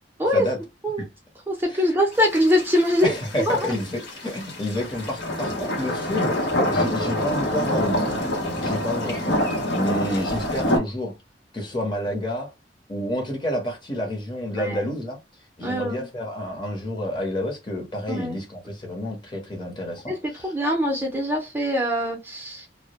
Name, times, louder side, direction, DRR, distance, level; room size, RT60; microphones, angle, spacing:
voice 1, 1.5-3.1 3.5-3.7 14.6-14.8 15.6-16.0 18.1-18.4 20.1-20.2 20.4-22.7, left 1 dB, 10° right, 0.5 m, -23 dB
sound 1, 2.1-10.8, left 1 dB, 75° left, 0.7 m, -26 dB
voice 2, 3.0-8.1 8.6-9.4 9.7-11.1 11.5-12.5 12.9-15.2 15.6-20.5, left 1 dB, 25° left, 0.8 m, -29 dB
2.1 x 2.0 x 2.8 m
head